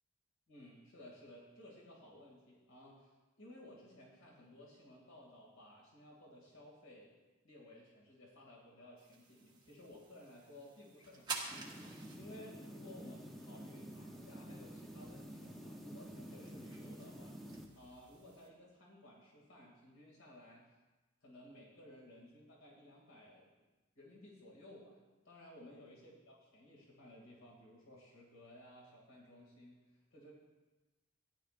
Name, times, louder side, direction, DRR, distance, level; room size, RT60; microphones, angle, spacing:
voice 1, 0.5-7.2 7.4-11.9 12.1-17.3 17.7-20.7 21.2-23.6 24.0-25.0 25.2-30.3, left 1 dB, 75° left, -3 dB, 2.5 m, -57 dB
sound 1, 9.0-18.5, right 4 dB, 20° right, 1.5 m, -51 dB
sound 2, 11.5-17.7, equal, ahead, 0.8 m, -50 dB
15.5 x 11.0 x 2.6 m, 1.1 s
head